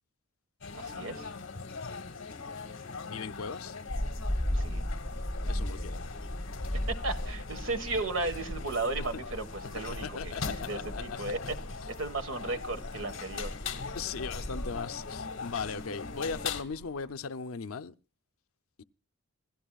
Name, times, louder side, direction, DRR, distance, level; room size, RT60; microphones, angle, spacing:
sound 1, 0.6-16.6, left 5 dB, 65° left, 1.6 m, -41 dB
voice 1, 0.7-1.3 4.5-4.9 6.7-11.6 11.9-13.5, right 3 dB, 65° right, 1.6 m, -35 dB
voice 2, 3.1-3.8 5.4-6.1 9.0-9.2 10.0-11.0 11.8-11.9 13.9-17.9 18.8-18.9, left 5 dB, 80° left, 0.6 m, -38 dB
sound 2, 3.9-17.1, equal, 5° right, 3.8 m, -37 dB
27.0 x 12.5 x 2.4 m
head